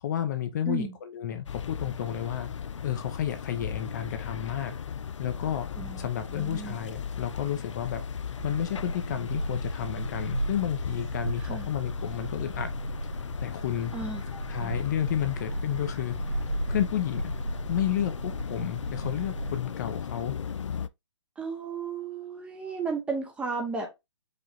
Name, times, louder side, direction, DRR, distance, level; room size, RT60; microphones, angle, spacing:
voice 1, 0.0-2.5 2.8-4.8 5.2-5.7 6.0-8.0 8.4-12.7 13.4-13.9 14.5-16.2 16.7-17.3 17.7-20.4, left 10 dB, 40° left, 0.6 m, -31 dB
sound 1, 1.5-20.9, left 7 dB, 85° left, 0.4 m, -37 dB
voice 2, 5.8-6.8 11.4-11.7 13.9-14.8 21.4-24.0, right 5 dB, 5° right, 0.6 m, -34 dB
Gull seagull, 8.4-19.6, right 1 dB, 65° right, 2.5 m, -35 dB
5.0 x 2.4 x 4.1 m
hypercardioid pair, 150°, 15 cm